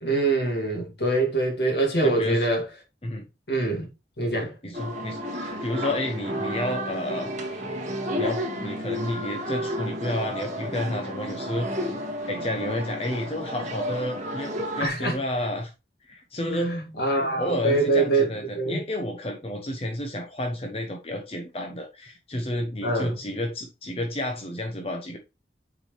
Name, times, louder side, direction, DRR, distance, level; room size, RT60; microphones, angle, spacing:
voice 1, 0.0-2.7 3.5-3.9 4.2-4.5 14.8-15.2 16.5-18.3 18.6-18.8 22.8-23.1, right 2 dB, 70° left, 2.3 m, -24 dB
voice 2, 2.0-2.5 3.0-3.2 4.4-7.7 8.2-12.0 12.3-15.7 16.0-25.2, left 1 dB, 35° left, 0.9 m, -31 dB
sound 1, 4.7-14.9, equal, 40° right, 1.8 m, -32 dB
7.2 x 4.9 x 3.3 m
head